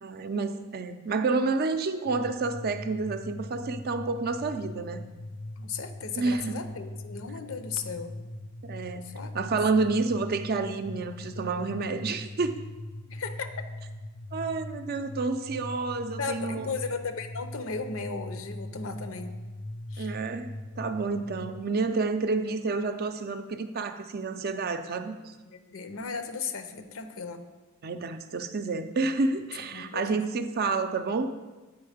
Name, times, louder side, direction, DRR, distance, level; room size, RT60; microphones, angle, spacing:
voice 1, 0.0-5.1 6.2-6.5 8.6-12.6 14.3-16.7 20.0-25.3 27.8-31.3, right 3 dB, 50° right, 9 dB, 0.5 m, -29 dB
sound 1, 2.0-21.6, left 1 dB, 30° left, 0.5 m, -41 dB
voice 2, 5.6-8.1 9.0-9.3 13.1-13.5 16.2-19.3 19.9-20.1 25.5-27.4 29.6-30.2, left 5 dB, 75° left, 8 dB, 0.7 m, -36 dB
8.5 x 4.5 x 5.0 m, 1.2 s
head